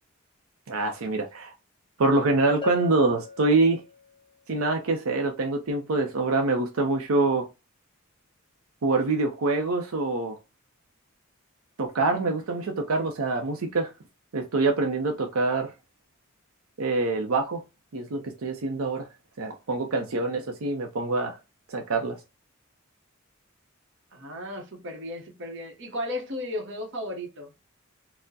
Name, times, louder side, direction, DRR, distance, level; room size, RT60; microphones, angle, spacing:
voice 1, 0.7-1.5 2.0-3.8 4.5-7.5 8.8-10.4 11.8-13.9 14.3-15.7 16.8-17.6 17.9-19.1 19.4-21.4 21.7-22.2, right 3 dB, 90° right, 0.6 m, -25 dB
Bell, 2.6-4.2, left 3 dB, 25° left, 0.6 m, -40 dB
voice 2, 24.1-27.5, left 1 dB, 60° right, 0.9 m, -35 dB
4.3 x 2.1 x 2.7 m
head